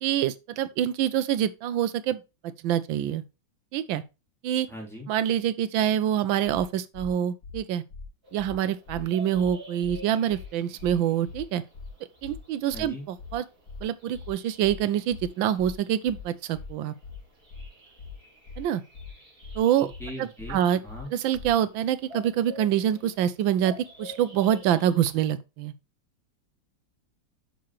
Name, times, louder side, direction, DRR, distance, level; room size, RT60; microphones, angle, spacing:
voice 1, 0.0-3.2 3.7-4.0 4.4-4.7 5.1-7.8 8.3-11.6 12.2-13.4 13.8-16.9 18.6-18.8 19.6-19.9 20.2-20.8 21.1-25.7, right 10 dB, 90° right, 1.4 m, -26 dB
voice 2, 4.7-5.1 12.7-13.1 20.0-21.1, equal, ahead, 3.0 m, -39 dB
sound 1, 6.5-6.6 6.9-7.1 7.4-7.6 7.9-8.1 8.4-8.5 8.9-9.0 9.3-9.5 9.8-10.0 10.3-10.5 10.8-10.9 11.3-11.4 11.7-11.9 12.2-12.4 12.7-12.9 13.2-13.3 13.7-13.8 14.1-14.3 14.6-14.8 15.1-15.3 15.6-15.7 16.1-16.2 16.5-16.7 17.0-17.2 17.5-17.7 18.0-18.1 18.5-18.6 18.9-19.1 19.4-19.6 19.9-20.1 20.4-20.5 20.9-21.0 21.3-21.5, left 5 dB, 50° left, 2.2 m, -41 dB
sound 2, 8.2-25.2, equal, 30° right, 4.1 m, -50 dB
6.7 x 6.6 x 3.0 m
omnidirectional pair, 2.1 m